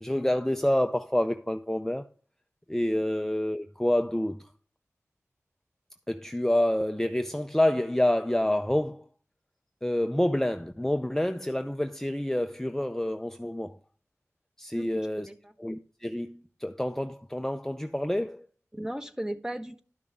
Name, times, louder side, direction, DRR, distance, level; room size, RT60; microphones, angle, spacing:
voice 1, 0.0-2.0 2.7-4.4 6.1-9.0 9.8-13.8 14.6-15.3 15.6-18.5, left 1 dB, 5° left, 0.6 m, -28 dB
voice 2, 14.7-15.5 18.7-19.8, right 1 dB, 10° right, 1.3 m, -36 dB
12.0 x 6.2 x 3.5 m
wide cardioid pair, 50°, 5 cm